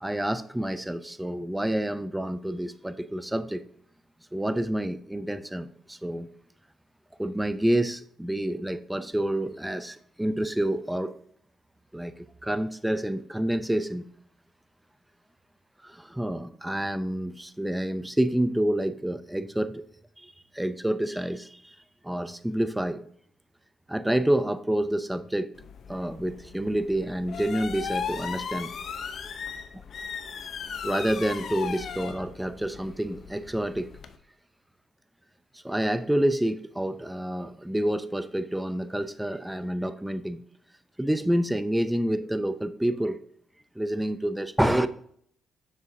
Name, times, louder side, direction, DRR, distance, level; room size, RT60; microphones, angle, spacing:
voice 1, 0.0-3.6 4.3-6.3 7.2-11.1 11.9-14.0 15.8-19.8 20.2-21.8 22.0-23.1 23.9-25.5 25.9-28.7 30.8-33.9 35.6-40.4 41.0-43.2 43.8-44.9, right 1 dB, 5° right, 12 dB, 0.5 m, -28 dB
sound 1, 25.6-34.2, left 6 dB, 60° left, 0.7 m, -37 dB
7.2 x 6.3 x 2.7 m, 0.63 s
cardioid pair, 90°, 0 cm